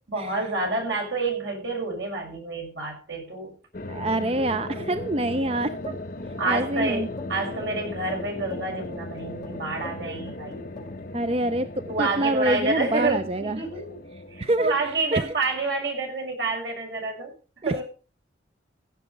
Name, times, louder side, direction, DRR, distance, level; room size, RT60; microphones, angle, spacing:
voice 1, 0.1-3.5 6.4-10.6 11.9-13.8 14.3-17.3 17.7-17.8, right 3 dB, 70° right, 1 dB, 6.1 m, -28 dB
sound 1, 3.7-15.8, left 2 dB, 45° left, 1.2 m, -37 dB
voice 2, 3.9-6.0 6.5-7.1 11.1-13.6 14.1-15.3 17.6-17.8, right 1 dB, 30° right, 11 dB, 0.5 m, -26 dB
sound 2, 5.8-11.1, left 3 dB, 20° left, 5.1 m, -42 dB
16.5 x 7.5 x 5.3 m, 0.38 s
head